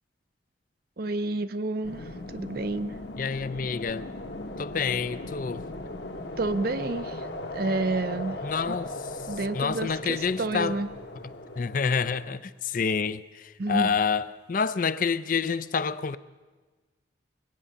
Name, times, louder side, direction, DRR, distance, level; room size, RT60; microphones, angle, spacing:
voice 1, 1.0-3.0 6.4-8.4 8.6-8.8 9.3-10.9 13.6-13.9, right 2 dB, 50° right, 0.6 m, -30 dB
sound 1, 1.8-12.4, left 2 dB, 60° left, 1.4 m, -38 dB
voice 2, 3.2-4.1 4.6-5.6 8.4-8.9 9.5-10.8 11.6-16.2, left 5 dB, 45° left, 0.4 m, -28 dB
22.5 x 8.8 x 6.9 m
head